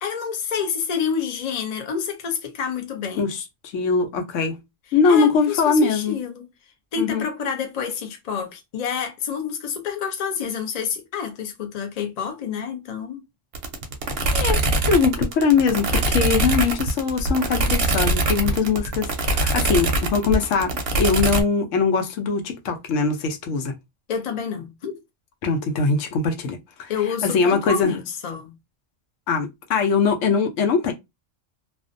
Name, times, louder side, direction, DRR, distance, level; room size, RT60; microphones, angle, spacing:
voice 1, 0.0-3.3 5.1-6.5 6.9-13.2 24.1-25.0 26.9-28.5, left 7 dB, 50° left, 0.4 m, -28 dB
voice 2, 3.2-4.6 4.9-6.2 7.0-7.2 14.3-14.6 14.9-23.7 25.4-26.9 27.2-27.9 29.3-30.9, left 5 dB, 75° left, 0.9 m, -22 dB
sound 1, 13.6-21.4, right 2 dB, 60° right, 0.7 m, -22 dB
2.5 x 2.1 x 2.4 m
omnidirectional pair, 1.3 m